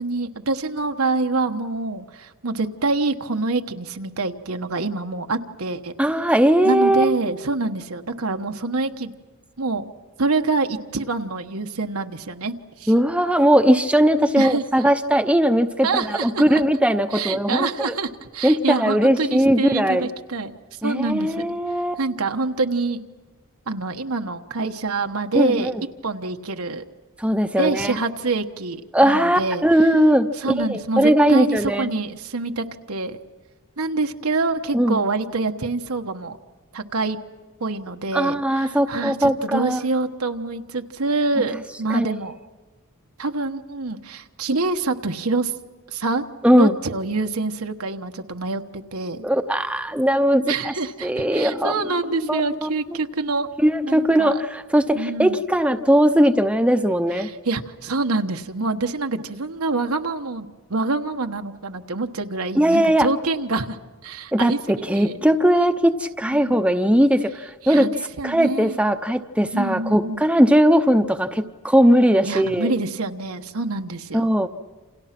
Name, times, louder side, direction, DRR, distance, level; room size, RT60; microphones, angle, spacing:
voice 1, 0.0-5.9 6.6-9.1 9.6-9.9 10.2-12.9 14.4-14.8 15.8-16.6 17.1-20.5 20.8-21.3 22.0-23.0 23.7-25.7 26.0-26.8 27.6-29.6 30.4-33.2 33.8-36.4 36.7-37.2 37.6-42.4 43.2-45.5 45.9-46.2 46.6-49.3 50.5-53.5 53.8-54.4 54.9-55.4 57.1-63.8 64.0-65.2 66.3-66.6 67.6-67.9 68.2-68.8 69.5-70.2 72.2-74.3, right 3 dB, 90° right, 6 dB, 1.3 m, -26 dB
voice 2, 6.0-7.2 12.9-17.9 18.4-20.1 20.8-22.0 25.3-25.8 27.2-28.0 28.9-31.9 34.7-35.0 38.1-39.8 41.9-42.1 46.4-46.7 49.2-50.7 51.0-51.7 52.1-52.7 53.6-57.3 62.5-63.1 64.3-67.9 68.2-72.7 74.1-74.5, equal, 5° right, 7 dB, 0.7 m, -19 dB
28.5 x 28.0 x 6.0 m, 1.2 s
head